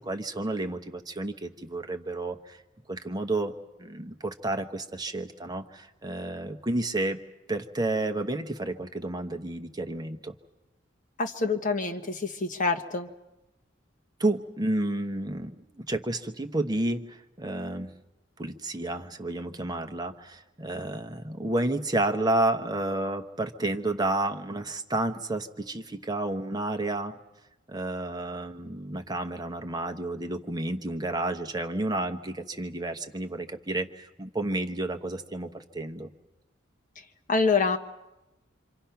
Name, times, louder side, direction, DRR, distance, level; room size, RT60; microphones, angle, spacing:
voice 1, 0.0-2.6 2.9-3.5 3.8-7.2 7.5-10.3 14.2-17.9 18.4-27.2 27.7-36.1, right 2 dB, 20° right, 6 dB, 1.0 m, -31 dB
voice 2, 11.2-13.1 37.3-37.8, left 4 dB, 40° left, 5 dB, 1.3 m, -26 dB
27.5 x 26.0 x 5.8 m, 0.99 s
head